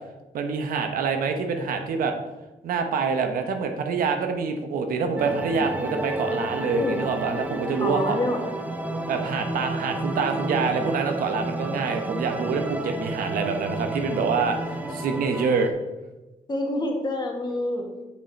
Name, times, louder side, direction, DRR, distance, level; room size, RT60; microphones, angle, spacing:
voice 1, 0.3-2.1 2.6-8.2 9.1-15.7, right 5 dB, 85° right, 6 dB, 0.9 m, -26 dB
sound 1, 5.2-15.7, right 1 dB, 10° right, 0.6 m, -31 dB
voice 2, 7.8-8.5 16.5-17.9, left 1 dB, 30° left, 1 dB, 1.6 m, -27 dB
6.7 x 5.7 x 4.1 m, 1.1 s
cardioid pair, 95°, 14 cm